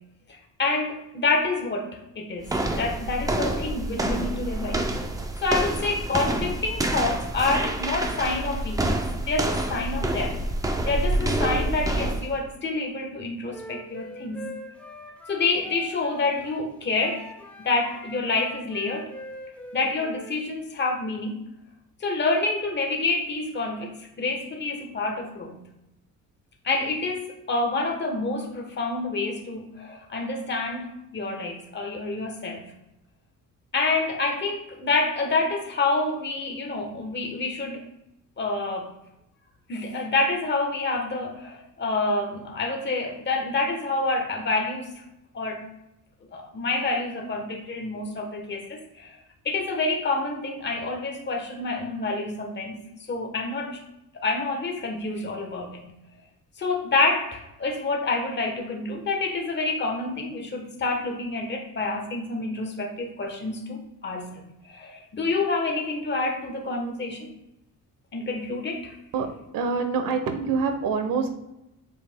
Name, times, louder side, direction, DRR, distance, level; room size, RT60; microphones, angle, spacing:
voice 1, 0.3-1.9 2.1-2.5 2.8-4.8 5.4-10.4 10.9-14.5 15.3-17.2 17.6-19.1 19.7-21.3 22.0-25.6 26.6-32.6 33.7-37.8 38.4-38.9 39.7-44.9 45.3-45.6 46.3-49.2 49.4-52.8 53.1-53.8 54.2-55.8 56.6-67.3 68.1-68.9, left 3 dB, 35° left, 2 dB, 1.1 m, -28 dB
sound 1, 2.4-12.3, right 1 dB, 10° right, 0.4 m, -27 dB
Wind instrument woodwind instrument, 13.5-16.7 17.0-20.4, equal, 5° left, 0.8 m, -42 dB
voice 2, 69.5-71.3, right 5 dB, 85° right, 7 dB, 1.0 m, -25 dB
7.9 x 5.4 x 2.2 m, 0.88 s
cardioid pair, 145°, 33 cm